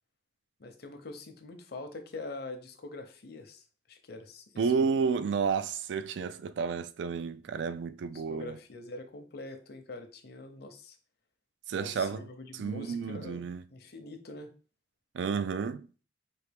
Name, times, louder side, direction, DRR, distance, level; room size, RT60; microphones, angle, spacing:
voice 1, 0.6-5.0 8.0-11.0 11.7-14.5, left 2 dB, 60° left, 0.7 m, -44 dB
voice 2, 4.6-8.6 11.7-12.3 12.5-13.6 15.1-15.9, right 5 dB, 75° right, 0.3 m, -31 dB
4.5 x 2.8 x 3.4 m
head